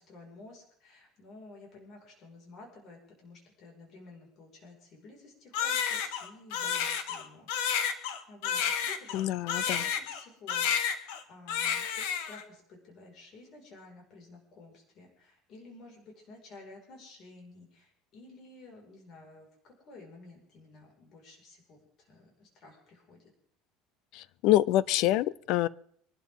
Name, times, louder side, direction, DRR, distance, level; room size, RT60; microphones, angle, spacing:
voice 1, 0.0-7.8 8.3-23.3, left 3 dB, 40° left, 5.4 m, -52 dB
Crying sobbing, 5.5-10.2 10.5-11.2 11.5-12.4, left 7 dB, 80° left, 1.8 m, -31 dB
voice 2, 9.1-9.8 24.1-25.7, left 14 dB, 55° left, 0.5 m, -26 dB
26.0 x 12.0 x 3.7 m
cardioid pair, 155°, 0 cm